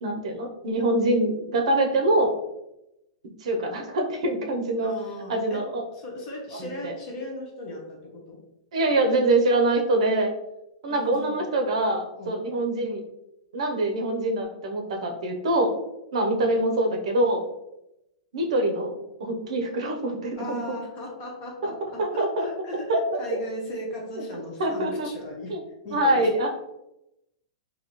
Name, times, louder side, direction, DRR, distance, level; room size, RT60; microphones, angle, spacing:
voice 1, 0.0-2.3 3.4-4.9 5.3-5.8 6.6-6.9 8.7-10.3 10.8-13.0 13.5-15.7 16.1-17.4 18.3-20.8 22.0-22.5 22.9-23.4 24.6-25.1 25.5-25.6 25.9-26.5, right 1 dB, 60° right, 3 dB, 0.7 m, -24 dB
voice 2, 4.8-5.6 5.9-8.4 10.9-11.5 12.1-12.4 16.3-16.5 20.4-25.5 25.8-26.5, left 1 dB, 25° left, -1 dB, 0.9 m, -37 dB
4.0 x 2.7 x 3.0 m, 0.87 s
supercardioid pair, 175°, 4 cm